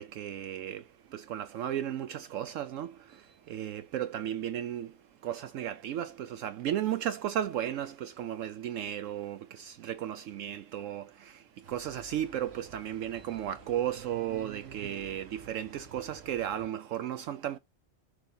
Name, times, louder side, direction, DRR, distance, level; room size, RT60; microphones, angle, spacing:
voice 1, 0.0-17.6, right 11 dB, 75° right, 0.9 m, -35 dB
sound 1, 11.6-16.7, right 2 dB, 50° right, 2.2 m, -54 dB
6.7 x 4.7 x 3.8 m
omnidirectional pair, 1.4 m